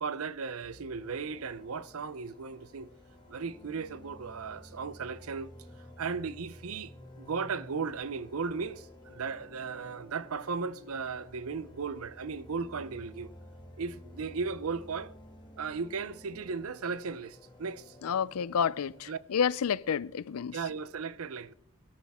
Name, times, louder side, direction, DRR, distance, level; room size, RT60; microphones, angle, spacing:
voice 1, 0.0-2.9 3.3-5.5 6.0-6.9 7.2-13.3 13.8-15.1 15.6-17.9 19.1-19.2 20.5-21.5, right 5 dB, 75° right, 0.6 m, -36 dB
sound 1, 0.6-19.1, left 1 dB, 20° left, 2.0 m, -52 dB
voice 2, 18.0-20.6, left 7 dB, 85° left, 0.4 m, -30 dB
22.5 x 13.0 x 3.6 m
head